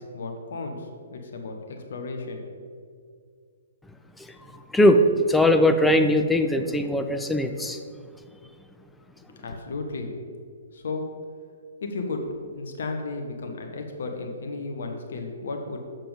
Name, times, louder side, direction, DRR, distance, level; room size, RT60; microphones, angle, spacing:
voice 1, 0.0-2.4 9.4-10.1 10.7-11.0 11.8-12.2 12.5-15.8, left 3 dB, 55° left, 3 dB, 0.9 m, -34 dB
voice 2, 4.2-7.8, left 1 dB, 5° left, 6 dB, 0.4 m, -21 dB
6.8 x 5.7 x 5.1 m, 2.1 s
figure-of-eight pair, 120°, 0 cm